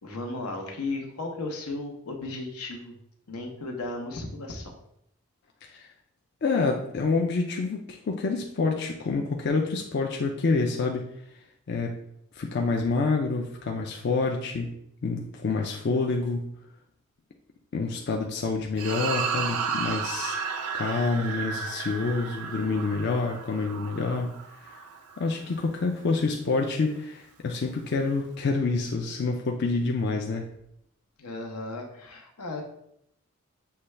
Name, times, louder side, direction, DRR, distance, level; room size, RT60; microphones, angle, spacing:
voice 1, 0.0-2.9 3.3-4.8 20.2-20.4 31.2-32.6, left 2 dB, 85° left, 2 dB, 0.9 m, -35 dB
voice 2, 6.4-11.1 11.7-12.0 12.4-14.7 15.0-16.5 17.7-20.4 20.7-24.8 25.2-30.5, left 3 dB, 50° left, 1 dB, 0.4 m, -27 dB
sound 1, 18.8-25.3, right 6 dB, 90° right, 0.4 m, -33 dB
6.7 x 2.2 x 3.2 m, 0.74 s
head